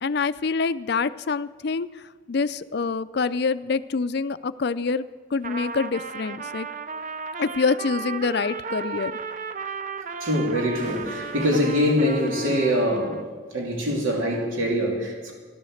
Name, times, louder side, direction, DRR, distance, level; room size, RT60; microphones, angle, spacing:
voice 1, 0.0-5.1 5.3-6.7 7.4-9.1, left 4 dB, 50° left, 14 dB, 0.4 m, -26 dB
Trumpet, 5.4-13.3, right 5 dB, 40° right, 0.6 m, -35 dB
voice 2, 10.2-13.3 13.5-15.3, equal, 80° right, -1 dB, 3.1 m, -24 dB
14.0 x 12.5 x 6.4 m, 1.5 s
head